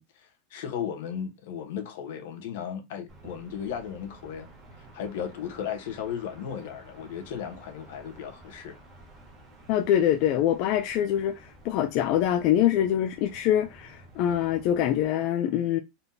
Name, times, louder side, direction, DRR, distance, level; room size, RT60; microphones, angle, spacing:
voice 1, 0.0-4.5 4.8-8.8, left 8 dB, 65° left, 1.1 m, -36 dB
sound 1, 3.1-15.1, right 2 dB, 15° right, 1.2 m, -52 dB
voice 2, 9.7-15.8, left 11 dB, 40° left, 0.3 m, -24 dB
4.1 x 3.4 x 2.7 m
supercardioid pair, 175°, 0 cm